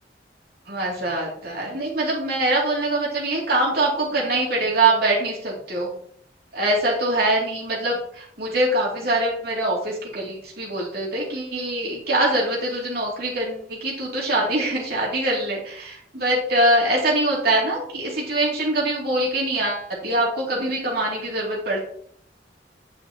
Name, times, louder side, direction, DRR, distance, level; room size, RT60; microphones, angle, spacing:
voice 1, 0.7-5.9 6.5-21.8, right 2 dB, 60° right, -3 dB, 2.8 m, -23 dB
8.8 x 6.9 x 3.0 m, 0.64 s
head